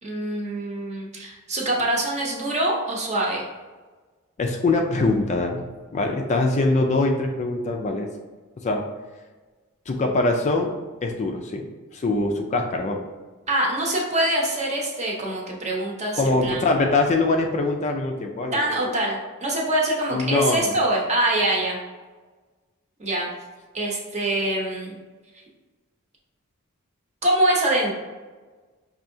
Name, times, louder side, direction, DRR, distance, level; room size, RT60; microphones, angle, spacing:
voice 1, 0.0-3.4 13.5-16.6 18.5-21.8 23.0-23.3 23.7-25.0 27.2-27.9, right 1 dB, 30° right, -2 dB, 0.8 m, -24 dB
voice 2, 4.4-5.6 5.9-8.1 8.6-8.8 9.9-10.7 11.0-11.6 11.9-13.0 16.2-18.6 20.1-20.8, left 2 dB, 30° left, 3 dB, 0.3 m, -23 dB
5.3 x 2.7 x 2.6 m, 1.3 s
head